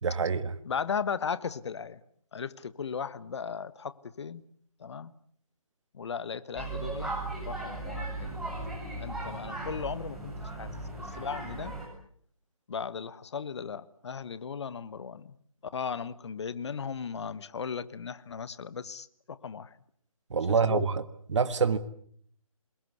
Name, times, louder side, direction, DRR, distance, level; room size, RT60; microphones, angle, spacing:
voice 1, 0.0-0.5 20.3-21.0 21.3-21.8, right 5 dB, 55° right, 1.7 m, -26 dB
voice 2, 0.6-2.0 2.3-4.4 4.8-5.1 5.9-7.2 7.4-8.4 9.0-11.7 12.7-15.4 15.7-19.8 20.5-20.9, left 6 dB, 50° left, 1.3 m, -36 dB
sound 1, 6.5-11.9, right 2 dB, ahead, 7.7 m, -37 dB
27.5 x 22.5 x 8.1 m
figure-of-eight pair, 150°, 18 cm